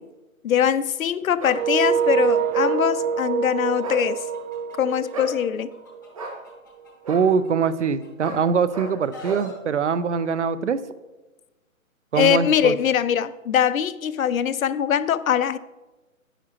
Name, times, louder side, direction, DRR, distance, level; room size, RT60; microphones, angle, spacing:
voice 1, 0.4-4.2 4.8-5.7 12.1-15.6, left 9 dB, 75° left, 15 dB, 0.6 m, -22 dB
sound 1, 1.4-1.6 2.5-2.7 3.8-4.1 5.1-5.4 6.1-6.4 7.0-7.3 8.2-8.4 8.7-8.9 9.2-9.5, right 1 dB, 25° right, 1.2 m, -32 dB
sound 2, 1.5-6.3, right 7 dB, 80° right, 0.9 m, -25 dB
Chicken rooster, 3.6-5.3 5.7-8.3 8.7-9.5, left 2 dB, 15° left, 0.7 m, -46 dB
voice 2, 7.1-10.8 12.1-12.7, right 6 dB, 55° right, 14 dB, 0.6 m, -23 dB
10.0 x 9.6 x 2.9 m, 1.1 s
hypercardioid pair, 175°, 42 cm